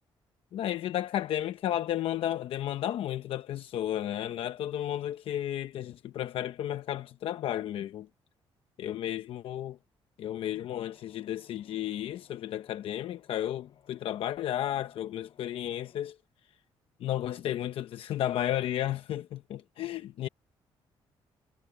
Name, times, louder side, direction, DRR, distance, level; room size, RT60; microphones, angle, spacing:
voice 1, 0.5-8.1 8.8-9.8 10.2-16.2 17.0-20.3, left 12 dB, 70° left, 0.8 m, -33 dB
Toned Dark Wind, 10.2-16.1, left 8 dB, 55° left, 5.5 m, -62 dB
cardioid pair, 115°, 10 cm